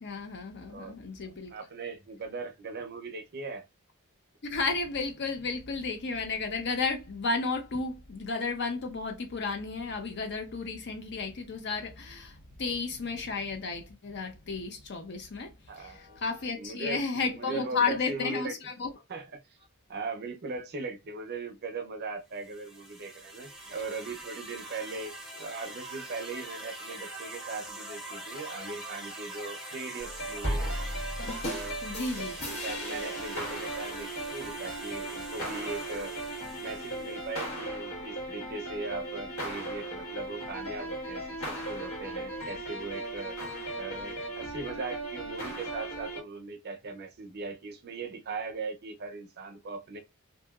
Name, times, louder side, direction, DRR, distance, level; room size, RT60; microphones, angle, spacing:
voice 1, 0.0-1.5 4.5-18.9 31.8-32.3, left 4 dB, 55° left, 0.6 m, -33 dB
voice 2, 0.7-1.0 1.2-3.7 15.7-16.2 16.5-17.1 17.4-18.6 19.1-19.4 19.9-30.7 31.4-31.8 32.2-36.1 36.6-43.4 43.7-50.0, right 3 dB, 50° right, 0.5 m, -39 dB
sound 1, 22.4-37.5, right 1 dB, ahead, 0.6 m, -43 dB
sound 2, 30.0-46.2, right 1 dB, 70° left, 1.5 m, -36 dB
2.7 x 2.7 x 2.3 m
head